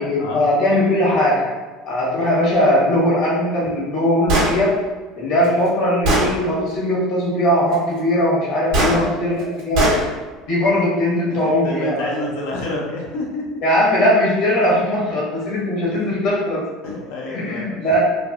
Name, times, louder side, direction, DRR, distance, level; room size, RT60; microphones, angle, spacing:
voice 1, 0.0-1.5 1.8-4.8 5.2-10.0 10.5-12.1 13.6-16.6 17.3-18.0, left 1 dB, 65° left, -5 dB, 1.3 m, -19 dB
Gunshot gunfire, 4.3-4.5 5.4-5.5 6.0-6.3 8.7-8.9 9.7-10.0, right 1 dB, 70° right, 0.9 m, -17 dB
voice 2, 8.8-9.1 11.3-13.6 15.1-15.2 15.9-16.0 16.8-17.7, left 2 dB, 80° left, -2 dB, 0.6 m, -28 dB
3.2 x 2.3 x 2.4 m, 1.3 s
supercardioid pair, 90°, 0 cm